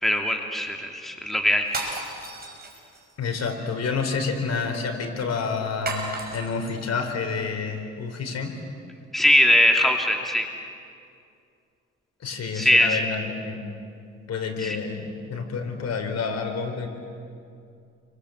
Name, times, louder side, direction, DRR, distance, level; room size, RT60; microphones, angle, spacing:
voice 1, 0.0-2.0 9.1-10.5 12.5-13.0 14.6-14.8, left 1 dB, ahead, 2 dB, 2.7 m, -21 dB
sound 1, 1.6-3.1 5.9-6.8, right 3 dB, 30° right, 6.2 m, -33 dB
voice 2, 3.2-6.1 6.3-8.5 12.2-13.7 14.3-16.9, left 5 dB, 60° left, 5 dB, 4.4 m, -29 dB
30.0 x 24.0 x 8.1 m, 2.4 s
cardioid pair, 90°, 30 cm